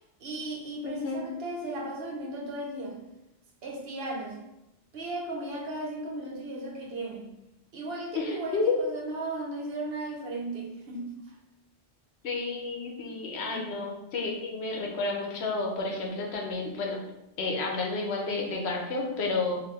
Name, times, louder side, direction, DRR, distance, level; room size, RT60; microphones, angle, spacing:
voice 1, 0.2-3.0 3.6-4.4 4.9-7.3 7.7-11.4 13.5-13.6, right 2 dB, 70° right, -1 dB, 0.9 m, -36 dB
voice 2, 0.8-1.3 8.1-8.7 12.2-17.0 17.4-19.6, left 3 dB, 75° left, 0 dB, 1.0 m, -31 dB
2.9 x 2.7 x 3.3 m, 0.90 s
omnidirectional pair, 1.1 m